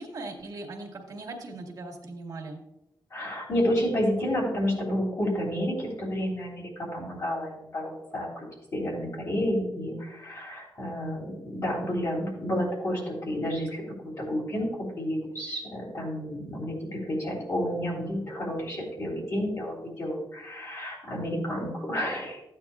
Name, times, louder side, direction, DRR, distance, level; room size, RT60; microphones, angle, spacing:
voice 1, 0.0-2.6, right 2 dB, 50° right, -1 dB, 1.8 m, -39 dB
voice 2, 3.1-8.3 8.7-13.8 14.2-14.7 15.0-22.4, equal, 45° left, -3 dB, 3.2 m, -30 dB
14.0 x 8.8 x 2.4 m, 0.90 s
wide cardioid pair, 180°, 8 cm